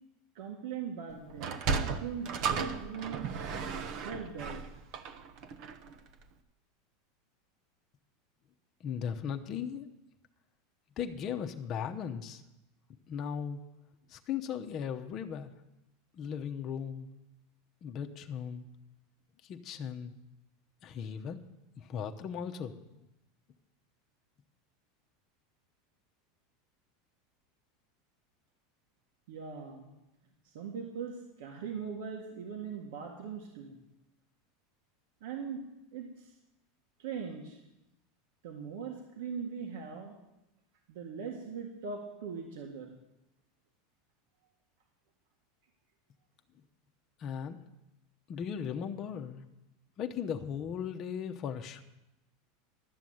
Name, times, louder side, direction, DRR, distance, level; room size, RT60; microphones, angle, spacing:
voice 1, 0.4-3.5 4.0-4.6 29.3-29.9 30.5-33.8 35.2-35.6 35.9-36.3 37.0-37.6 38.4-40.2 40.9-43.0, right 6 dB, 75° right, 1 dB, 1.8 m, -40 dB
Sliding door, 1.3-5.9, right 5 dB, 55° right, 0.9 m, -35 dB
voice 2, 8.8-9.9 11.0-12.4 13.1-13.6 14.1-15.5 16.1-17.1 17.8-18.7 19.4-20.1 20.8-21.4 21.8-22.7 47.2-47.6 48.3-49.4 50.0-51.8, left 7 dB, 35° left, 4 dB, 0.9 m, -37 dB
12.0 x 7.1 x 7.8 m, 0.92 s
supercardioid pair, 135°, 0 cm